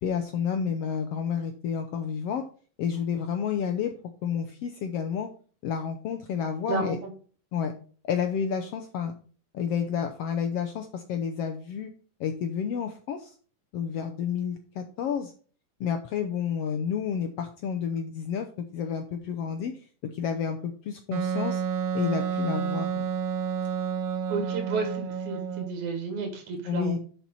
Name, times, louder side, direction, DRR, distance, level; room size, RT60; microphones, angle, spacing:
voice 1, 0.0-2.4 2.8-3.9 4.2-5.3 5.6-7.0 7.5-7.7 8.0-9.1 9.5-11.9 12.2-13.3 13.7-15.3 15.8-19.7 20.1-21.6 21.9-23.1 26.7-27.0, left 7 dB, 85° left, 6 dB, 1.4 m, -30 dB
voice 2, 6.7-7.1 24.3-27.0, right 4 dB, 60° right, 3 dB, 2.9 m, -31 dB
Wind instrument woodwind instrument, 21.1-25.8, right 7 dB, 90° right, 2.5 m, -30 dB
7.1 x 5.9 x 5.5 m, 0.41 s
omnidirectional pair, 3.8 m